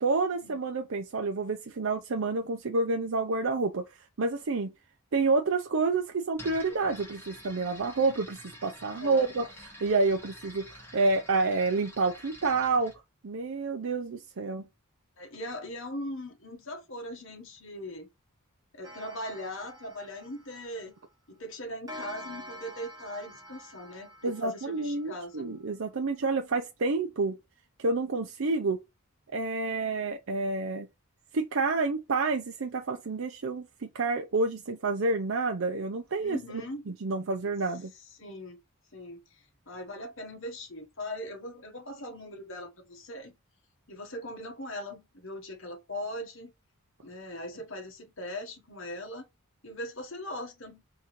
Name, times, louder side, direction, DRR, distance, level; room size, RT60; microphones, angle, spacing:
voice 1, 0.0-3.8 4.2-4.7 5.1-9.5 9.8-14.6 24.2-27.4 27.8-28.8 29.3-30.9 31.3-36.4 36.9-37.9, right 3 dB, 65° right, 0.6 m, -29 dB
sound 1, 6.3-13.0, left 1 dB, 10° left, 1.4 m, -48 dB
voice 2, 8.8-9.3 15.2-18.1 18.7-21.0 21.3-25.5 36.2-36.8 38.2-38.6 38.9-43.3 43.9-46.5 47.0-49.3 49.6-50.8, left 1 dB, 60° left, 1.5 m, -40 dB
Clock, 18.8-21.1 21.9-25.3, equal, 15° right, 1.0 m, -47 dB
3.7 x 3.0 x 4.4 m
head